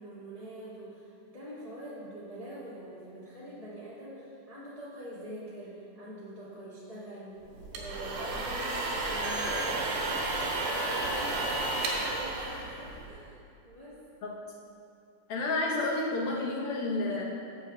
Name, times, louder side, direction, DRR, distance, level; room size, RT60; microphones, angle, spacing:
voice 1, 0.0-7.4 7.7-14.0, equal, 50° left, -9 dB, 0.4 m, -44 dB
sound 1, 7.5-13.3, right 2 dB, 75° right, 2.5 m, -32 dB
voice 2, 15.3-17.2, left 2 dB, 85° left, -2 dB, 1.2 m, -30 dB
6.8 x 5.8 x 7.0 m, 2.5 s
omnidirectional pair, 3.8 m